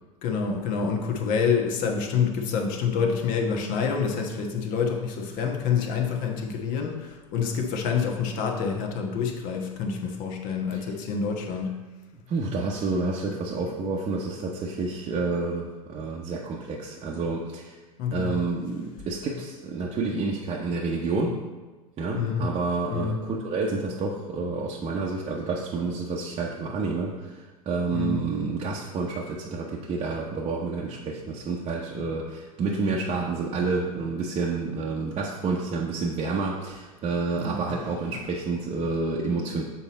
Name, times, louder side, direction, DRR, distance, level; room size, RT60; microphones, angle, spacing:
voice 1, 0.2-11.8 18.0-18.3 22.1-22.5 22.9-23.2 27.9-28.2 37.4-38.2, left 6 dB, 50° left, 2 dB, 1.1 m, -27 dB
voice 2, 12.3-17.8 18.1-21.4 22.0-39.6, right 3 dB, 30° right, -3 dB, 0.8 m, -29 dB
6.9 x 4.4 x 4.1 m, 1.3 s
hypercardioid pair, 90°, 19 cm